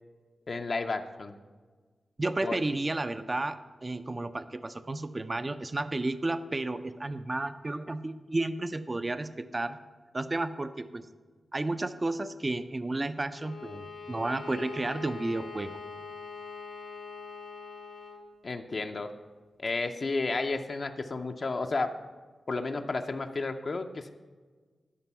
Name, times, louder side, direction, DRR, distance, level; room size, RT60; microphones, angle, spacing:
voice 1, 0.5-1.3 2.4-2.6 18.4-19.1 19.6-21.9 22.5-24.1, left 3 dB, 55° left, 5 dB, 0.5 m, -32 dB
voice 2, 2.2-9.8 10.1-11.1 11.5-15.7, right 2 dB, 35° right, 11 dB, 0.4 m, -32 dB
Bowed string instrument, 13.3-18.3, left 5 dB, 85° left, 1.1 m, -43 dB
12.5 x 5.2 x 5.6 m, 1.5 s
cardioid pair, 55°, 0 cm